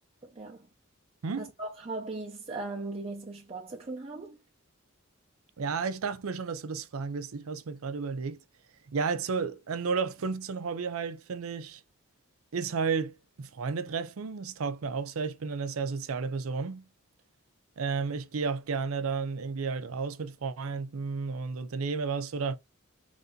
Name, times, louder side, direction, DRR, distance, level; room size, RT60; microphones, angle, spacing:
voice 1, 0.2-0.7 1.4-4.4, right 2 dB, 30° right, 0.6 m, -38 dB
voice 2, 5.6-8.4 8.9-11.8 12.5-16.9 17.8-22.6, right 5 dB, 85° right, 0.5 m, -32 dB
3.3 x 2.7 x 3.7 m
head